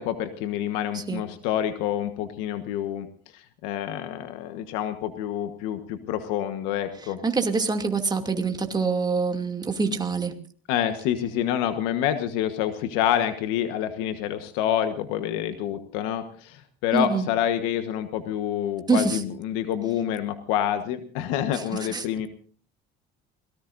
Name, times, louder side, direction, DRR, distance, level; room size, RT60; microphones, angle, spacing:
voice 1, 0.0-3.1 3.3-7.2 10.7-22.3, left 10 dB, 90° left, 9 dB, 1.3 m, -27 dB
voice 2, 7.0-10.3 16.9-17.3 18.9-19.2 21.5-22.1, right 4 dB, 20° right, 4 dB, 2.5 m, -25 dB
27.5 x 18.5 x 2.6 m, 0.44 s
cardioid pair, 105°, 20 cm